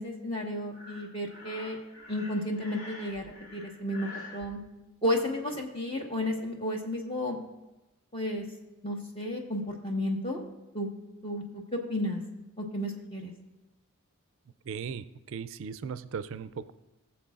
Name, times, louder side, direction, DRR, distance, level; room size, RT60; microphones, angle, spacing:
voice 1, 0.0-1.8 2.1-3.2 3.5-4.6 5.0-7.4 8.1-8.4 8.8-10.4 10.7-10.9 11.2-12.2 12.6-13.3, left 1 dB, 25° left, 1 dB, 1.4 m, -32 dB
Breathing, 0.7-4.5, left 2 dB, 70° left, 1.9 m, -46 dB
voice 2, 14.7-16.7, right 6 dB, 60° right, 14 dB, 0.4 m, -37 dB
20.5 x 7.4 x 2.5 m, 1.0 s
head